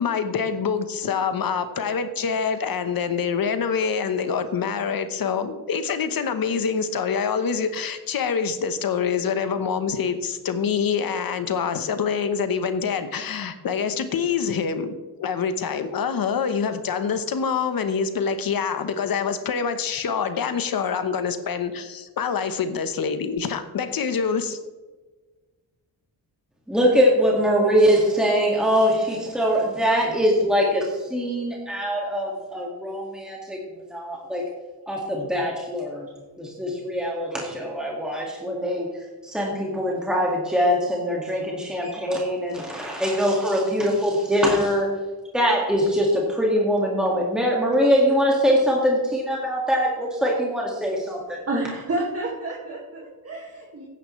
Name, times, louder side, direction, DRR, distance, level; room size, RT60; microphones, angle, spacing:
voice 1, 0.0-14.9 15.2-24.6, left 6 dB, 60° left, 10 dB, 1.1 m, -25 dB
voice 2, 26.7-33.6 33.9-34.4 34.9-36.1 36.4-38.9 39.2-44.9 45.3-51.4, equal, ahead, -2 dB, 2.0 m, -22 dB
voice 3, 51.5-53.8, right 2 dB, 35° right, -2 dB, 2.1 m, -29 dB
14.5 x 10.5 x 3.2 m, 1.3 s
cardioid pair, 105°, 39 cm